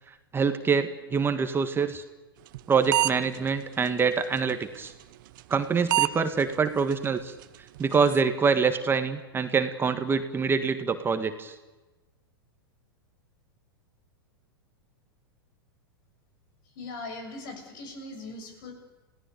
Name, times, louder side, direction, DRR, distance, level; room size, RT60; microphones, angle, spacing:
voice 1, 0.3-2.0 2.7-4.9 5.5-7.4 7.8-11.6, right 5 dB, 20° right, 8 dB, 1.7 m, -25 dB
sound 1, 2.5-2.6 2.9-3.4 3.9-4.0 5.4-5.6 5.9-6.1 6.4-6.5 6.9-7.0 7.4-7.5 7.8-8.2, right 16 dB, 55° right, 0.9 m, -24 dB
voice 2, 16.8-18.7, left 2 dB, 55° left, 6 dB, 7.3 m, -40 dB
29.0 x 17.5 x 8.5 m, 1.2 s
hypercardioid pair, 100°, 12 cm